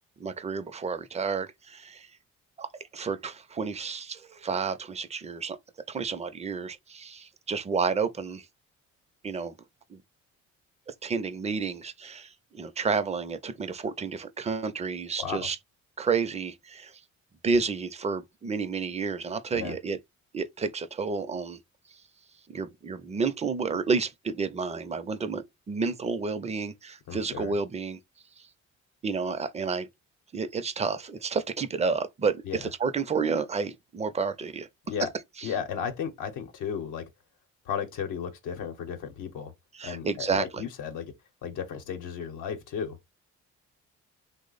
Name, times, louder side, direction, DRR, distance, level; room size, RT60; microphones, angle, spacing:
voice 1, 0.2-2.1 2.6-2.7 2.9-5.6 5.9-8.4 9.2-9.5 9.9-10.0 10.9-15.6 16.0-16.9 17.4-20.0 20.3-21.6 22.5-28.0 29.0-29.9 30.3-34.7 35.4-35.5 39.7-40.6, right 5 dB, 20° right, 0.4 m, -30 dB
voice 2, 27.1-27.5 32.4-32.7 34.9-35.1 35.4-37.0 37.7-39.5 39.8-41.1 41.4-43.0, left 7 dB, 85° left, 0.8 m, -34 dB
3.0 x 2.0 x 3.9 m
cardioid pair, 90°, 30 cm